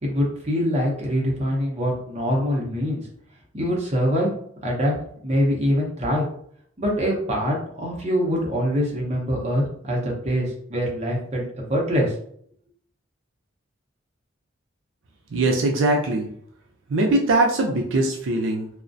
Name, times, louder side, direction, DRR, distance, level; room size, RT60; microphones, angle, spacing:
voice 1, 0.0-3.0 3.5-4.3 4.6-4.9 5.2-6.3 6.8-11.4 11.7-12.1, equal, 35° right, -2 dB, 0.6 m, -24 dB
voice 2, 15.3-16.3 16.9-18.7, right 2 dB, 75° right, 1 dB, 0.4 m, -21 dB
2.4 x 2.1 x 2.5 m, 0.64 s
head